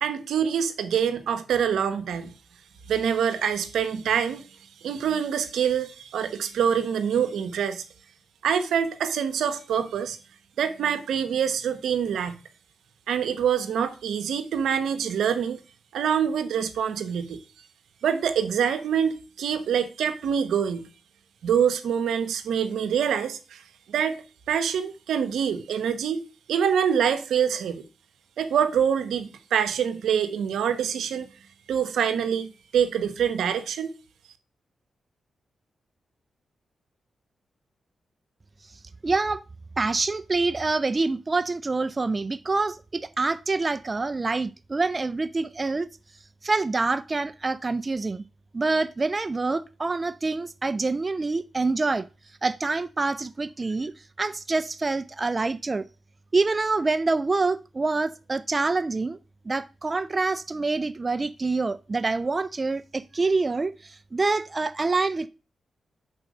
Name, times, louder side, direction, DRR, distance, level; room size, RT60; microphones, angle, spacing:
voice 1, 0.0-2.3 2.9-4.4 4.8-7.8 8.4-10.2 10.6-12.4 13.1-15.6 15.9-17.4 18.0-20.9 21.4-23.6 23.9-26.2 26.5-27.8 28.4-31.3 31.7-33.9, right 8 dB, 85° right, 0.8 m, -25 dB
voice 2, 38.7-39.4 39.8-45.9 46.4-48.2 48.5-52.1 52.4-53.9 54.2-55.8 56.3-59.2 59.5-65.3, right 3 dB, 35° right, 0.4 m, -26 dB
6.2 x 4.3 x 6.3 m
cardioid pair, 60°, 0 cm